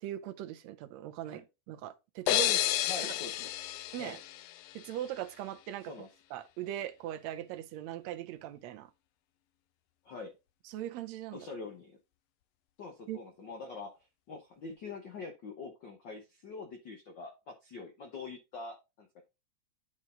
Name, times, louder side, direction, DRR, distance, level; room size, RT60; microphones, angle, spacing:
voice 1, 0.0-2.5 3.0-3.1 3.9-4.2 4.7-5.9 6.3-8.9 10.7-11.5 13.1-13.2, right 12 dB, 75° right, 1.8 m, -40 dB
sound 1, 2.3-5.0, left 13 dB, 90° left, 1.4 m, -31 dB
voice 2, 2.3-3.5 4.0-4.2 5.9-6.1 10.0-10.3 11.3-11.9 12.8-19.2, left 4 dB, 65° left, 1.1 m, -44 dB
9.7 x 4.3 x 3.8 m
omnidirectional pair, 3.5 m